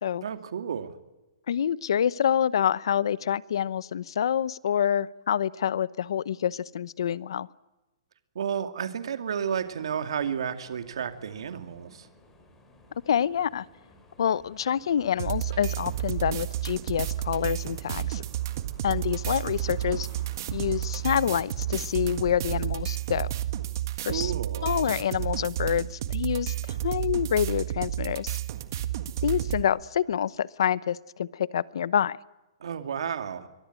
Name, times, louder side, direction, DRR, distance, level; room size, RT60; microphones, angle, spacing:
voice 1, 0.2-1.0 8.3-12.1 24.0-24.8 32.6-33.5, right 7 dB, 70° right, 8 dB, 2.5 m, -32 dB
voice 2, 1.5-7.5 13.1-13.7 14.2-18.2 18.8-20.1 20.5-23.3 24.0-24.3 24.6-26.5 26.8-28.4 29.2-32.2, left 9 dB, 60° left, 20 dB, 0.8 m, -27 dB
sound 1, 9.5-22.5, left 1 dB, 10° left, 3.7 m, -57 dB
Cricket / Motor vehicle (road), 14.8-23.5, right 6 dB, 25° right, 4.8 m, -56 dB
sound 2, 15.2-29.6, right 13 dB, 40° right, 1.6 m, -31 dB
24.0 x 19.5 x 9.1 m, 1.1 s
hypercardioid pair, 175°, 3 cm